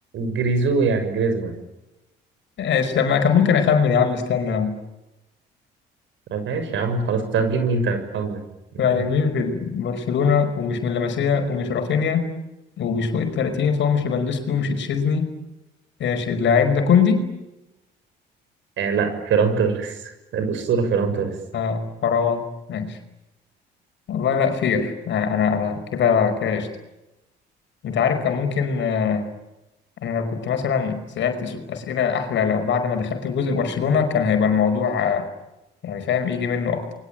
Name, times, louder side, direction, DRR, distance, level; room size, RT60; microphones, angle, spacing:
voice 1, 0.1-1.5 6.3-8.4 8.8-9.0 18.8-21.4, right 4 dB, 65° right, 8 dB, 6.6 m, -23 dB
voice 2, 2.6-4.8 8.8-12.3 12.8-15.3 16.0-17.2 21.5-23.0 24.1-26.7 27.8-29.2 30.0-35.3 35.8-36.9, left 6 dB, 60° left, 7 dB, 5.3 m, -22 dB
29.0 x 23.0 x 9.1 m, 0.99 s
supercardioid pair, 65°, 21 cm